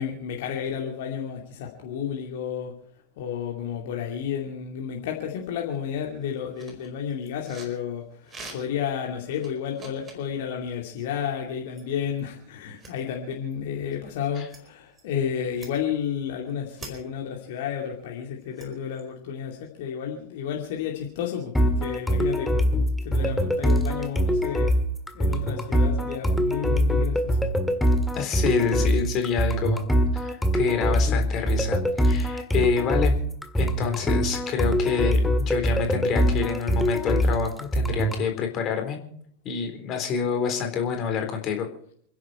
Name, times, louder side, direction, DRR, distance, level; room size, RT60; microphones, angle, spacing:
voice 1, 0.0-2.7 3.2-22.7 23.0-24.7 25.1-27.4, left 8 dB, 50° left, 0 dB, 2.5 m, -31 dB
sound 1, 5.4-5.5 5.7-7.8 8.2-8.9 9.3-10.3 11.7-11.8 12.2-12.3 12.8-12.9 13.5-13.6 14.4-14.6 14.9-15.0 15.5-16.1 16.5-16.9 18.0-19.1, right 3 dB, 20° right, 4.7 m, -44 dB
sound 2, 21.5-38.2, equal, 5° left, 1.8 m, -23 dB
voice 2, 28.1-29.8 30.1-33.2 33.6-39.0 39.4-41.7, left 7 dB, 35° left, 5 dB, 3.8 m, -27 dB
29.0 x 11.0 x 4.4 m, 0.62 s
figure-of-eight pair, 90°, 0 cm